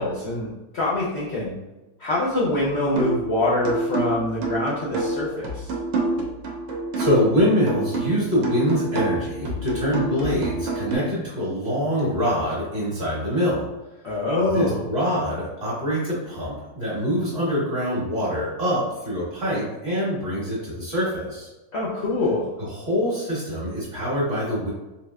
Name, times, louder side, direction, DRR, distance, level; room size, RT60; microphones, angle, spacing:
voice 1, 0.0-1.5 2.0-5.7 14.0-14.9 21.7-22.5, left 2 dB, 70° left, -5 dB, 0.6 m, -24 dB
sound 1, 3.0-3.3 3.6-7.3 7.7-11.0, right 2 dB, 90° right, 1.4 m, -27 dB
voice 2, 6.9-13.7 14.4-21.5 22.7-24.7, equal, 40° right, -8 dB, 1.2 m, -24 dB
3.8 x 2.8 x 2.2 m, 1.1 s
omnidirectional pair, 2.0 m